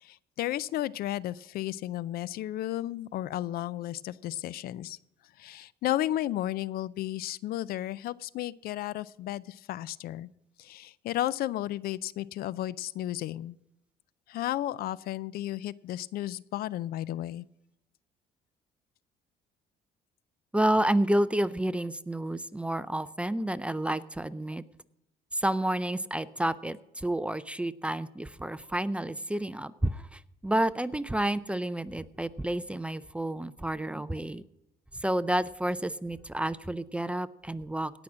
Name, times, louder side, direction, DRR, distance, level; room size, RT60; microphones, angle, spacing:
voice 1, 0.0-5.0 5.4-10.3 10.6-13.6 14.3-17.4, left 13 dB, 65° left, 21 dB, 0.4 m, -33 dB
voice 2, 20.5-24.6 25.3-34.4 35.0-37.9, right 1 dB, 5° right, 16 dB, 0.4 m, -30 dB
17.5 x 6.0 x 6.1 m, 0.86 s
cardioid pair, 110°, 17 cm